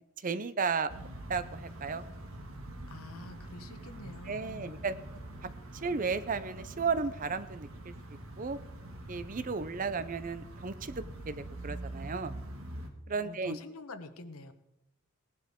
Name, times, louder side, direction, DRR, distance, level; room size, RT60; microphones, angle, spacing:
voice 1, 0.2-0.9 1.3-2.0 4.3-4.9 5.8-7.9 8.4-8.6 9.1-12.3 13.1-13.6, right 5 dB, 40° right, 14 dB, 0.5 m, -34 dB
sound 1, 0.9-12.9, right 1 dB, 70° right, 1.8 m, -44 dB
voice 2, 2.9-4.9 13.1-14.5, left 3 dB, 80° left, 8 dB, 1.1 m, -47 dB
18.0 x 11.0 x 3.6 m, 0.87 s
head